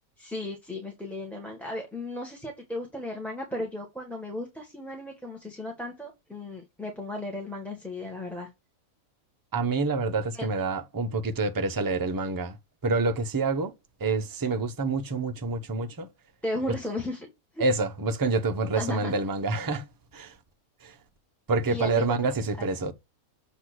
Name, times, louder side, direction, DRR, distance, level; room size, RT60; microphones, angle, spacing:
voice 1, 0.2-8.5 10.4-10.5 16.4-17.2 17.5-17.6 18.7-19.1 21.7-22.2 22.6-22.7, left 1 dB, ahead, 1.4 m, -35 dB
voice 2, 9.5-12.6 12.8-13.7 14.0-16.1 17.6-20.4 20.8-21.0 21.5-22.9, right 3 dB, 25° right, 0.4 m, -27 dB
7.9 x 3.0 x 6.1 m
omnidirectional pair, 1.5 m